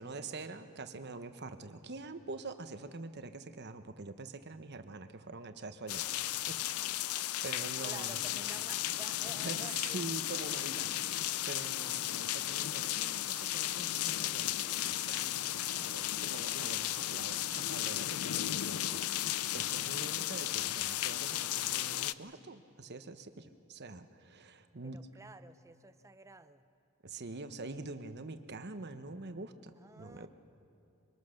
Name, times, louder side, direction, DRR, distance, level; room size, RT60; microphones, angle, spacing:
voice 1, 0.0-6.1 6.5-6.7 7.4-8.2 9.2-25.0 27.0-30.3, right 3 dB, 50° right, 9 dB, 1.0 m, -45 dB
sound 1, 5.9-22.1, left 13 dB, 85° left, 0.5 m, -35 dB
voice 2, 7.8-10.1 24.8-26.6 29.8-30.3, right 2 dB, 15° right, 11 dB, 0.6 m, -51 dB
sound 2, 12.3-19.3, left 3 dB, 55° left, 1.1 m, -63 dB
25.0 x 24.0 x 6.5 m, 2.7 s
head